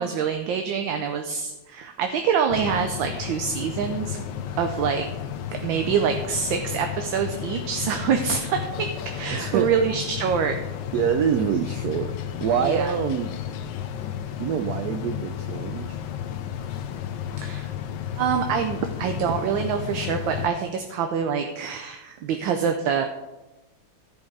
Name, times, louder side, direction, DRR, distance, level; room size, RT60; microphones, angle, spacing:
voice 1, 0.0-4.2 4.6-5.1 5.6-10.6 12.6-12.9 17.4-17.7 18.2-23.1, right 7 dB, 70° right, 5 dB, 1.4 m, -25 dB
sound 1, 2.5-20.5, left 9 dB, 70° left, 1.2 m, -33 dB
voice 2, 9.3-9.7 10.9-12.1 12.4-13.3 14.4-16.0, right 8 dB, 90° right, 8 dB, 0.8 m, -25 dB
14.0 x 5.3 x 4.7 m, 1.0 s
omnidirectional pair, 2.3 m